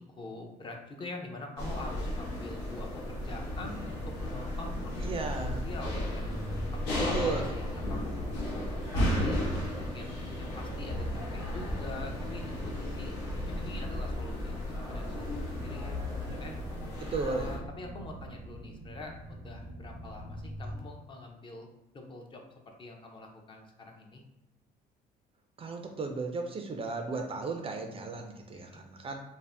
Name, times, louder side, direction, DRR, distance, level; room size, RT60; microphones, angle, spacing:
voice 1, 0.0-6.3 6.9-9.4 9.7-13.1 13.5-14.6 14.9-16.5 17.2-21.7 21.9-24.2 28.5-28.8, left 2 dB, 30° left, 2 dB, 0.5 m, -45 dB
sound 1, 1.6-17.6, left 1 dB, 90° left, 0.9 m, -35 dB
sound 2, 3.0-20.8, equal, 85° right, 0.6 m, -43 dB
voice 2, 5.0-5.7 7.1-7.4 7.7-7.8 17.0-17.5 25.6-29.2, right 4 dB, 35° right, 4 dB, 0.4 m, -35 dB
2.6 x 2.1 x 3.3 m, 0.95 s
cardioid pair, 110°, 17 cm